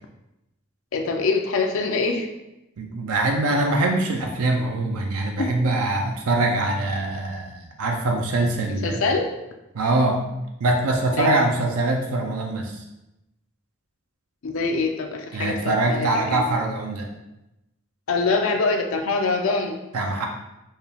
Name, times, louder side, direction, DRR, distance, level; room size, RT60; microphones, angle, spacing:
voice 1, 0.9-2.3 5.4-5.5 8.8-9.3 11.1-11.3 14.4-16.5 18.1-19.8, left 3 dB, 70° left, 3 dB, 0.4 m, -24 dB
voice 2, 2.8-9.1 9.7-10.2 10.6-12.8 15.3-17.1 19.9-20.3, right 2 dB, 90° right, 2 dB, 0.5 m, -23 dB
4.5 x 2.3 x 3.3 m, 0.92 s
head